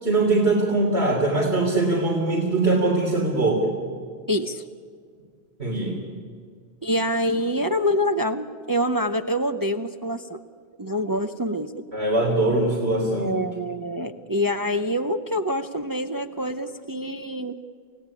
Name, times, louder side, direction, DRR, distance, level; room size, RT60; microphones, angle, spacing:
voice 1, 0.0-3.7 5.6-5.9 11.9-13.3, right 2 dB, 70° right, -3 dB, 3.8 m, -22 dB
voice 2, 4.3-4.6 6.8-10.4 10.8-11.9 13.2-17.6, equal, 20° right, 7 dB, 0.7 m, -26 dB
28.5 x 16.5 x 9.8 m, 2.1 s
omnidirectional pair, 1.1 m